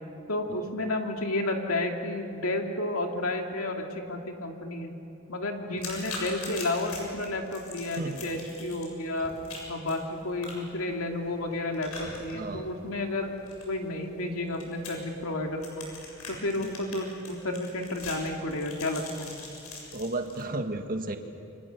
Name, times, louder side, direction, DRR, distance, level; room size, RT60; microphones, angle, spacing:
voice 1, 0.3-4.9 5.3-9.3 9.7-13.3 13.7-15.9 16.3-19.3, left 2 dB, 70° left, 2 dB, 2.8 m, -31 dB
sound 1, 5.8-20.4, left 3 dB, 85° left, 7.2 m, -43 dB
voice 2, 12.3-12.7 16.6-16.7 19.9-21.2, right 2 dB, 40° right, 5 dB, 1.7 m, -33 dB
29.5 x 25.5 x 6.9 m, 2.8 s
head